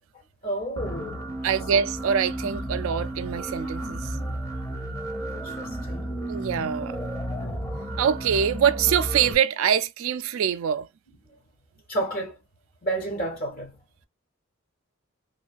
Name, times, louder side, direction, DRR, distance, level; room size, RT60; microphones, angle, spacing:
voice 1, 0.4-1.4 5.3-6.2 7.4-7.5 11.9-12.4 12.8-13.7, right 1 dB, 45° left, 1.0 m, -31 dB
sound 1, 0.8-9.3, right 1 dB, 15° left, 0.7 m, -32 dB
voice 2, 1.4-4.1 6.3-7.0 8.0-10.9, right 8 dB, 80° right, 0.3 m, -24 dB
3.1 x 2.3 x 2.3 m
head